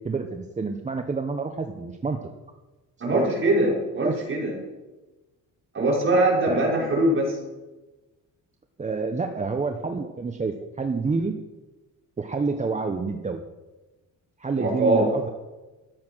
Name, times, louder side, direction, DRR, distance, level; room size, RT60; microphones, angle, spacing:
voice 1, 0.0-2.2 3.1-3.3 4.0-4.2 6.5-6.6 8.8-11.4 12.2-13.4 14.4-15.3, right 4 dB, 20° right, 6 dB, 0.9 m, -28 dB
voice 2, 3.0-4.6 5.7-7.4 14.6-15.1, right 1 dB, 40° right, -3 dB, 5.4 m, -22 dB
13.5 x 9.6 x 6.2 m, 1.2 s
cardioid pair, 120°, 31 cm